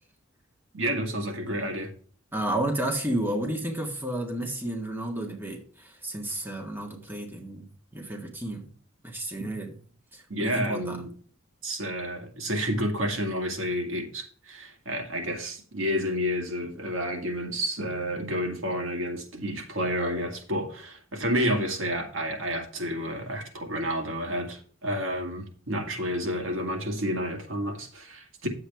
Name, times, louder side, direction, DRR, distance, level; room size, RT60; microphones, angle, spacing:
voice 1, 0.7-1.9 9.4-9.5 10.3-11.1 11.6-28.5, equal, 70° right, 2.0 m, -30 dB
voice 2, 2.3-7.6 7.9-8.7 9.0-9.7 10.1-11.0, right 1 dB, 10° right, 1.7 m, -31 dB
9.6 x 7.8 x 3.5 m
head